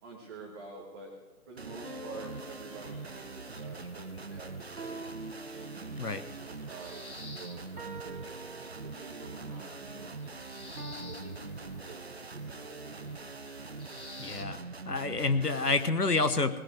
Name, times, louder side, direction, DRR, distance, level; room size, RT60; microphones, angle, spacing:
voice 1, 0.0-1.1 1.5-5.1 5.5-8.4 8.7-10.2 10.7-13.4, right 3 dB, 15° right, -4 dB, 1.5 m, -48 dB
sound 1, 1.6-15.9, right 4 dB, 45° right, 0.5 m, -43 dB
sound 2, 1.8-3.6 4.8-6.2 7.8-9.3 10.8-11.8, right 1 dB, 75° right, 1.9 m, -46 dB
sound 3, 2.3-14.4, left 3 dB, 65° left, 2.1 m, -53 dB
voice 2, 14.2-14.6 14.9-16.6, left 3 dB, 90° left, 11 dB, 1.2 m, -28 dB
19.5 x 17.0 x 3.5 m, 1.1 s
figure-of-eight pair, 150°, 46 cm